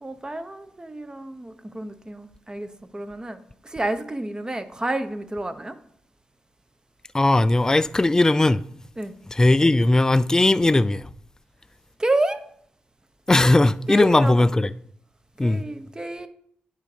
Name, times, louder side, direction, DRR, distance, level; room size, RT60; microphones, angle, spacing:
voice 1, 0.0-5.7 9.0-9.1 12.0-12.4 13.9-14.4 15.4-16.3, right 2 dB, 20° right, 0.8 m, -29 dB
voice 2, 7.1-8.6 9.3-11.0 13.3-14.7 15.4-15.6, left 2 dB, 15° left, 0.3 m, -18 dB
9.0 x 3.7 x 4.9 m
cardioid pair, 55°, 4 cm